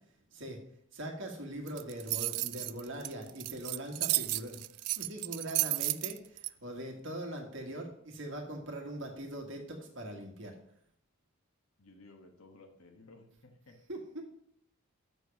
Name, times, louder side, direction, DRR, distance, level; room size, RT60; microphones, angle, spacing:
voice 1, 0.9-4.6 5.0-10.6 13.9-14.2, right 1 dB, 55° right, 2 dB, 1.7 m, -41 dB
sound 1, 1.7-6.5, right 20 dB, 85° right, 0.3 m, -33 dB
voice 2, 11.8-13.8, left 2 dB, 70° left, 4 dB, 1.3 m, -56 dB
7.0 x 6.6 x 5.3 m, 0.70 s
head